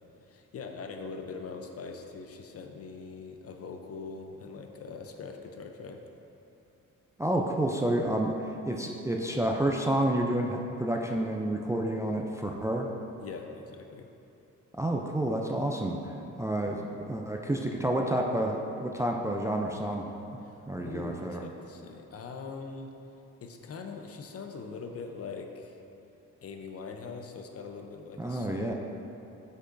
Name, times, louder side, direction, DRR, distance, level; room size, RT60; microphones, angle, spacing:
voice 1, 0.2-6.0 13.2-14.1 20.4-22.9 23.4-25.8 26.4-28.7, left 4 dB, 50° left, 4 dB, 0.6 m, -42 dB
voice 2, 7.2-12.9 14.7-20.1 20.7-21.4 28.2-28.7, right 1 dB, 10° right, 1 dB, 0.4 m, -29 dB
8.1 x 5.4 x 2.6 m, 2.8 s
cardioid pair, 90°, 32 cm